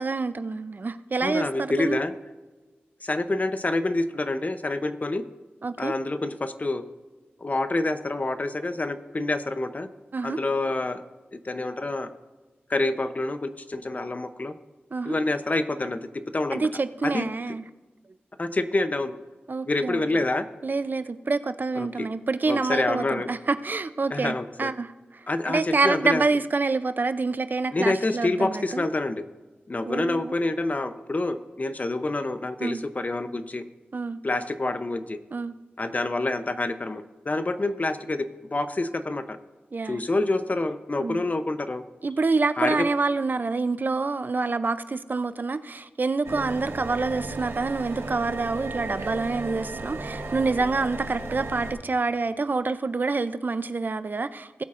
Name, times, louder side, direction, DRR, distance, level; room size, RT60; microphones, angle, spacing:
voice 1, 0.0-2.0 5.6-5.9 10.1-10.4 14.9-15.2 16.5-17.6 19.5-20.2 20.6-24.9 25.5-28.8 29.9-30.3 32.6-32.8 33.9-34.2 35.3-35.5 39.7-40.0 41.0-41.2 42.0-54.6, right 3 dB, 50° right, 12 dB, 0.4 m, -27 dB
voice 2, 1.2-2.1 3.0-5.2 5.8-6.8 7.4-9.9 10.2-11.0 11.3-12.1 12.7-14.5 15.0-16.1 16.3-16.7 17.0-17.3 18.4-19.1 19.7-20.5 21.8-22.1 22.4-23.3 24.1-24.7 25.3-26.2 27.7-29.2 29.7-33.6 34.2-35.2 35.8-39.4 39.9-41.8 42.6-42.9, left 2 dB, 40° left, 10 dB, 0.6 m, -27 dB
sound 1, 46.2-51.7, right 2 dB, 75° right, 1.1 m, -35 dB
19.0 x 8.4 x 2.5 m, 1.3 s
wide cardioid pair, 70°, 4 cm